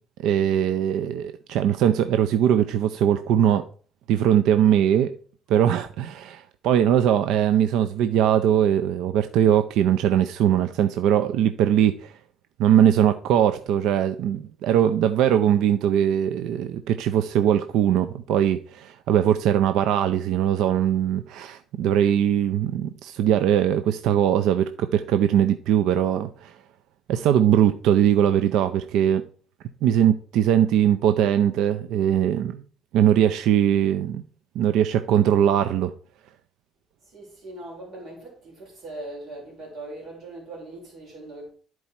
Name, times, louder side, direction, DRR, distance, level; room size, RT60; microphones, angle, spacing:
voice 1, 0.2-3.6 4.1-5.1 5.5-12.1 12.6-26.5 27.1-29.2 29.8-32.6 32.9-34.2 34.6-35.9, right 10 dB, 75° right, 0.5 m, -21 dB
voice 2, 37.1-41.5, right 2 dB, 45° right, 3.5 m, -40 dB
12.0 x 4.7 x 4.2 m
cardioid pair, 140°, 0 cm